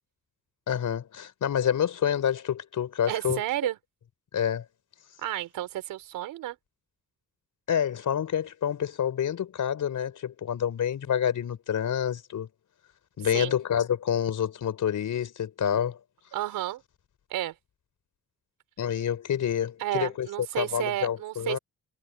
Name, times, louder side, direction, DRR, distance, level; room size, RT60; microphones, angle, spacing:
voice 1, 0.7-3.4 4.3-4.6 7.7-12.5 13.2-16.0 18.8-20.3 20.6-21.6, left 9 dB, 65° left, 4.4 m, -28 dB
voice 2, 3.1-3.8 5.2-6.6 13.3-13.6 16.3-16.8 17.3-17.5 19.8-21.6, right 14 dB, 80° right, 4.5 m, -31 dB
hypercardioid pair, 45°, 33 cm